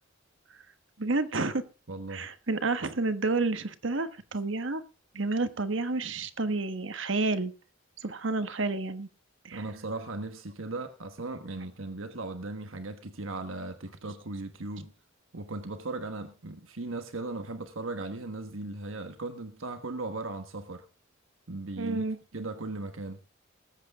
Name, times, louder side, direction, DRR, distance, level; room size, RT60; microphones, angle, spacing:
voice 1, 1.0-1.6 2.1-4.8 5.1-7.5 8.0-9.1 9.5-9.6 21.8-22.2, right 3 dB, 65° right, 1.3 m, -30 dB
voice 2, 1.9-2.3 9.5-14.9 15.3-20.9 21.5-22.0 22.3-23.2, right 2 dB, 85° right, 1.4 m, -37 dB
20.0 x 8.4 x 3.7 m
head